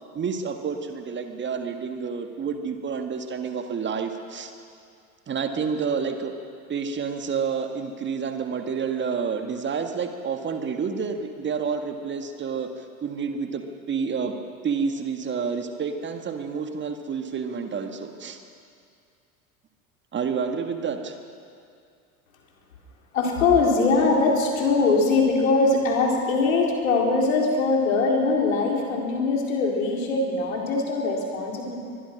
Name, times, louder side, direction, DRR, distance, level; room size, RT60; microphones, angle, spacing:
voice 1, 0.1-4.5 5.3-6.3 6.7-14.3 14.6-18.4 20.1-21.2, right 6 dB, 25° right, 6 dB, 1.7 m, -29 dB
voice 2, 23.1-31.7, left 3 dB, 65° left, -1 dB, 4.4 m, -22 dB
23.0 x 22.0 x 6.2 m, 2.4 s
figure-of-eight pair, 75°, 43 cm